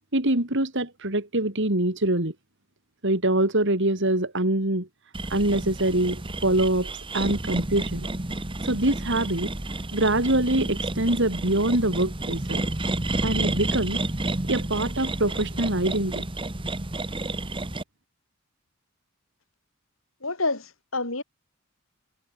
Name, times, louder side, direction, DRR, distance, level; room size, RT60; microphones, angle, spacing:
voice 1, 0.1-2.3 3.0-4.9 5.3-8.1 8.6-9.5 9.9-12.6 13.2-14.0 14.5-16.3, right 1 dB, 55° right, 3.7 m, -24 dB
sound 1, 5.1-17.8, right 2 dB, 25° right, 1.4 m, -30 dB
voice 2, 20.2-21.2, left 3 dB, 65° left, 6.1 m, -28 dB
head